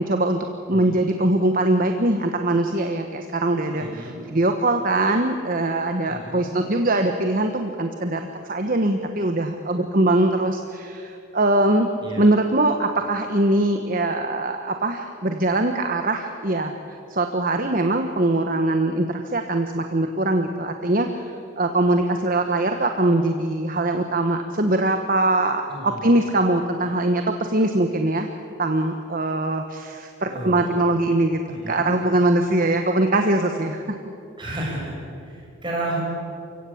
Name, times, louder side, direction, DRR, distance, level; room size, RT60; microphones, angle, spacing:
voice 1, 0.1-0.4 0.7-11.9 12.2-16.7 17.1-28.3 28.6-31.4 31.7-34.0, right 2 dB, 40° right, 6 dB, 1.1 m, -22 dB
voice 2, 3.8-4.1 6.1-6.5 12.0-12.3 25.7-26.0 30.2-30.8 31.5-31.9 34.4-35.0 35.2-36.1, right 2 dB, 20° right, -3 dB, 6.5 m, -32 dB
28.5 x 16.5 x 8.6 m, 2.6 s
head